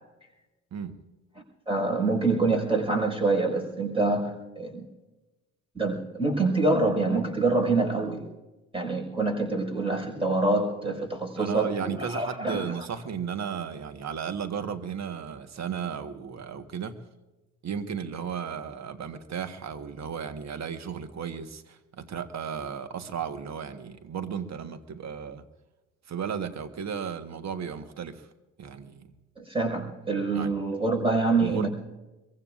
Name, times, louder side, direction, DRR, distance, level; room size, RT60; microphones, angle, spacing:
voice 1, 1.7-4.9 5.7-8.2 8.7-12.6 29.4-31.7, right 3 dB, 15° right, 5.6 m, -26 dB
voice 2, 11.4-17.0 17.6-25.4 26.1-28.3 28.6-29.1 30.3-30.5 31.4-31.7, right 7 dB, 40° right, 1.5 m, -34 dB
23.0 x 23.0 x 2.6 m
figure-of-eight pair, 50°, 40 cm